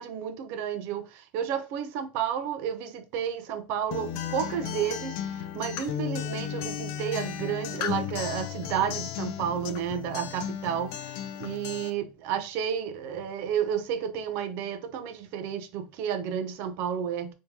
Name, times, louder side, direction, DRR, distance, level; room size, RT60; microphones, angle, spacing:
voice 1, 0.0-17.3, right 8 dB, 55° right, 0.6 m, -31 dB
Acoustic guitar, 3.9-11.9, left 9 dB, 55° left, 0.5 m, -34 dB
3.5 x 2.8 x 2.8 m
supercardioid pair, 150°, 5 cm